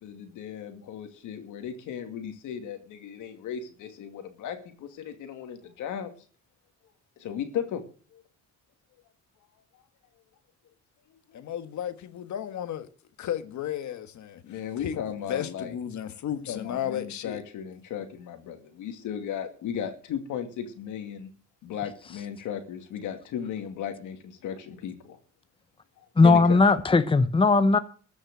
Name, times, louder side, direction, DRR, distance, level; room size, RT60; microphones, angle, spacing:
voice 1, 0.0-6.1 7.2-7.8 8.1-8.2 11.3-11.4 14.4-15.7 16.5-21.3 21.6-25.2 26.2-26.6, left 8 dB, 85° left, 2.4 m, -36 dB
voice 2, 11.3-12.9 13.2-17.4, left 10 dB, 70° left, 1.6 m, -34 dB
voice 3, 26.2-27.8, left 3 dB, 15° left, 0.9 m, -18 dB
14.0 x 6.4 x 7.7 m
cardioid pair, 90°, 30 cm